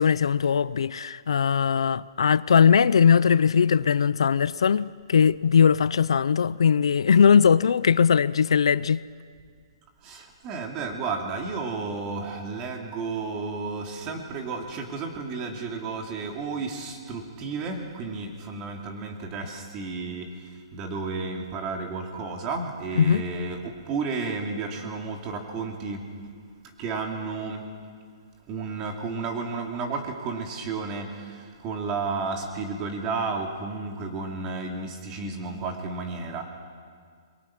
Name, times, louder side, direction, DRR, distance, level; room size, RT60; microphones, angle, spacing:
voice 1, 0.0-9.0 23.0-23.2, left 7 dB, 85° left, 0.5 m, -20 dB
voice 2, 10.0-20.3 20.7-26.0 26.8-27.6 28.5-36.4, right 4 dB, 20° right, 2.5 m, -32 dB
28.5 x 22.5 x 6.0 m
hypercardioid pair, 165°, 3 cm